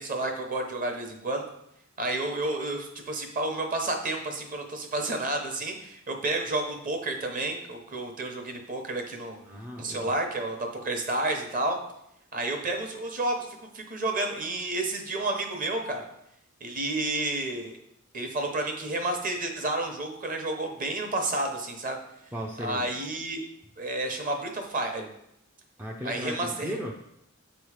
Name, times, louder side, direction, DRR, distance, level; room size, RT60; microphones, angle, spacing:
voice 1, 0.0-1.5 2.0-9.4 9.8-11.8 12.3-16.0 16.6-17.8 18.1-22.0 22.6-23.4 23.8-25.1 26.0-26.8, right 2 dB, 40° right, 3 dB, 0.9 m, -30 dB
voice 2, 9.4-10.1 22.3-22.9 25.8-26.9, equal, 10° right, -1 dB, 0.4 m, -36 dB
7.7 x 3.1 x 4.8 m, 0.79 s
head